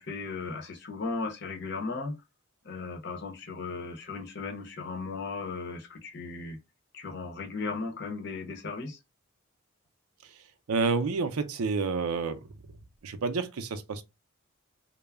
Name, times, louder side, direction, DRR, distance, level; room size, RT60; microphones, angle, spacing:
voice 1, 0.0-2.2 2.6-6.6 6.9-9.0, left 4 dB, 50° left, 0.7 m, -36 dB
voice 2, 10.7-12.5 13.0-14.0, right 4 dB, 90° right, 0.5 m, -29 dB
2.2 x 2.0 x 3.3 m
head